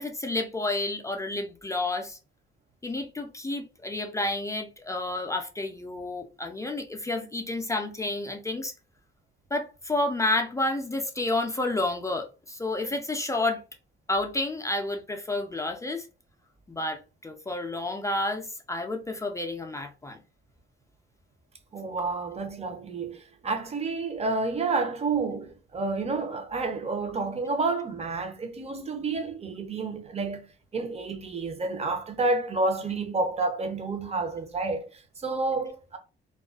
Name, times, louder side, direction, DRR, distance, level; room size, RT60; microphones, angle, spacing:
voice 1, 0.0-2.2 2.8-8.7 9.5-13.6 14.1-16.0 16.7-20.2, left 2 dB, 15° left, 0.4 m, -30 dB
voice 2, 21.7-36.0, right 3 dB, 30° right, 0.6 m, -30 dB
2.3 x 2.2 x 2.3 m
cardioid pair, 90°, 20 cm